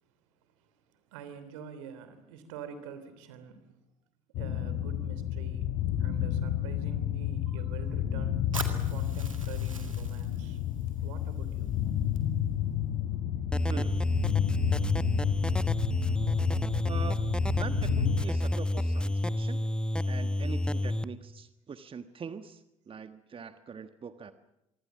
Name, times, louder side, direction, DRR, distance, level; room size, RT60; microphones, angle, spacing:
voice 1, 0.6-3.7 4.3-8.5 8.9-10.6 11.0-11.7 12.6-12.8 13.0-13.2 15.7-16.2 16.8-16.9, right 7 dB, 70° right, 11 dB, 3.2 m, -47 dB
sound 1, 4.3-18.2, left 11 dB, 60° left, 1.5 m, -31 dB
Fire, 8.5-12.5, right 3 dB, 90° right, 2.1 m, -44 dB
sound 2, 13.5-21.0, left 1 dB, 5° left, 1.1 m, -29 dB
voice 2, 13.7-14.1 16.8-17.2 17.6-19.6 20.0-24.3, right 6 dB, 35° right, 11 dB, 1.4 m, -43 dB
25.0 x 24.0 x 7.3 m, 0.89 s
figure-of-eight pair, 50°, 17 cm